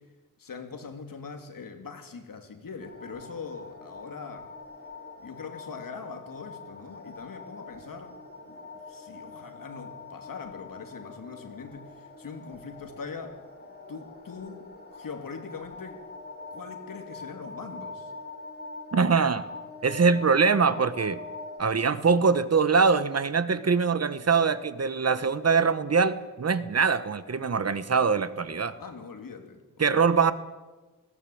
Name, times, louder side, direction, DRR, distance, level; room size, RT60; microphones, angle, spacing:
voice 1, 0.4-4.5 5.2-8.2 8.5-8.6 8.9-13.4 13.9-16.0 16.5-18.1 28.8-30.0, left 5 dB, 65° left, 5 dB, 2.9 m, -42 dB
sound 1, 2.8-21.6, left 3 dB, 25° left, 4.4 m, -44 dB
voice 2, 18.9-19.5 19.8-21.2 21.6-28.7 29.8-30.3, right 5 dB, 45° right, 13 dB, 1.1 m, -23 dB
20.5 x 17.0 x 8.6 m, 1.2 s
wide cardioid pair, 130°, 36 cm